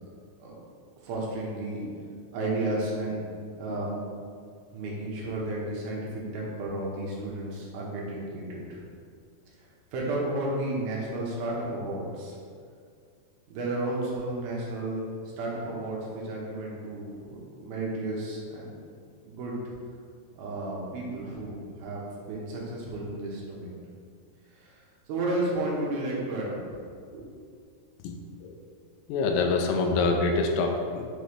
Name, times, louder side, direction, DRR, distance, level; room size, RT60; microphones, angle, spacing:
voice 1, 1.0-1.8 2.3-3.3 3.6-4.0 4.7-8.8 9.9-12.4 13.5-15.0 15.4-18.8 19.2-19.6 20.4-23.8 24.6-24.8 25.1-26.6 27.1-27.3, right 2 dB, 75° right, -4 dB, 3.0 m, -32 dB
voice 2, 29.1-31.1, left 3 dB, 85° left, 3 dB, 2.7 m, -25 dB
7.7 x 5.5 x 3.3 m, 2.2 s
omnidirectional pair, 4.5 m